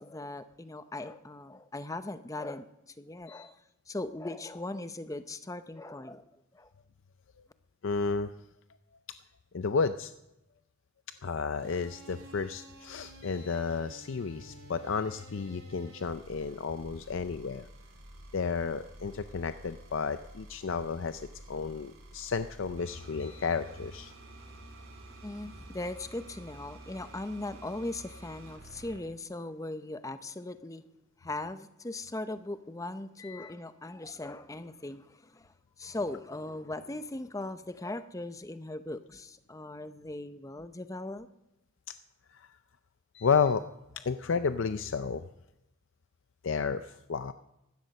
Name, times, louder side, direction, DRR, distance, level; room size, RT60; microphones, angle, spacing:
voice 1, 0.0-3.6 3.9-6.2 6.5-6.7 25.2-30.8 31.2-41.3, left 2 dB, 15° left, 12 dB, 0.6 m, -39 dB
voice 2, 7.8-8.3 9.5-10.1 11.2-17.7 18.3-24.1 33.2-33.5 42.3-42.5 43.1-43.6 44.0-45.2 46.4-47.3, left 5 dB, 65° left, 11 dB, 0.5 m, -32 dB
sound 1, 11.6-29.0, right 2 dB, 90° right, 3.7 m, -51 dB
15.5 x 12.0 x 6.5 m, 0.91 s
head